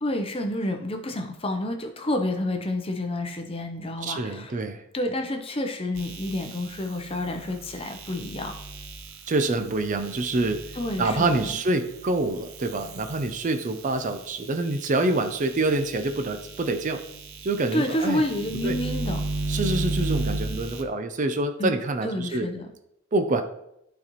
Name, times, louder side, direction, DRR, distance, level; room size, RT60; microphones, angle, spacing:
voice 1, 0.0-4.5 4.9-8.5 10.7-11.6 17.7-19.2 21.6-21.7 22.0-22.7, left 1 dB, 25° left, 5 dB, 0.6 m, -29 dB
voice 2, 4.0-4.8 9.3-10.6 11.0-17.0 17.4-18.2 18.6-18.8 19.5-22.5 23.1-23.4, right 2 dB, 35° right, 9 dB, 0.5 m, -26 dB
sound 1, 6.0-14.3 14.7-20.8, right 2 dB, 80° right, 0.9 m, -35 dB
11.5 x 4.1 x 3.0 m, 0.80 s
head